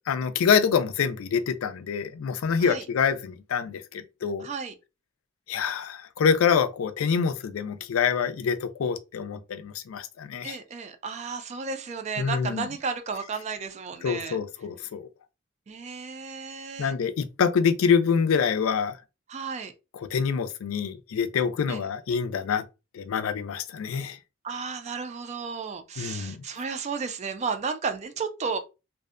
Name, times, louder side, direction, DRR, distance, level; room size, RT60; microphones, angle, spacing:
voice 1, 0.1-4.5 5.5-10.6 12.2-12.7 14.0-15.1 16.8-19.0 19.9-22.6 22.9-24.2 26.0-26.4, left 6 dB, 90° left, 0.4 m, -26 dB
voice 2, 4.4-4.7 10.4-14.4 15.7-16.9 19.3-19.7 21.7-21.9 24.4-28.6, right 5 dB, 35° right, 0.3 m, -33 dB
2.6 x 2.1 x 2.4 m
head